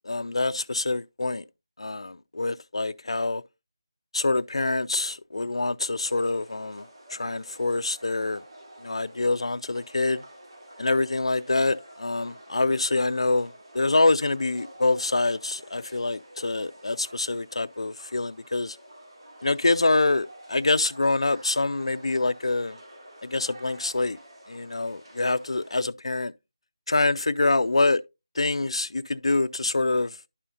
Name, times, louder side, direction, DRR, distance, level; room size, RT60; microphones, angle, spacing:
voice 1, 0.0-1.4 1.8-3.4 4.1-6.8 7.1-8.4 8.8-10.2 10.8-18.8 19.4-22.8 23.2-24.2 24.5-26.3 26.9-28.0 28.4-30.2, left 2 dB, 90° left, 0.4 m, -25 dB
sound 1, 6.0-25.9, right 1 dB, 55° right, 2.5 m, -49 dB
11.0 x 5.5 x 2.4 m
figure-of-eight pair, 175°, 3 cm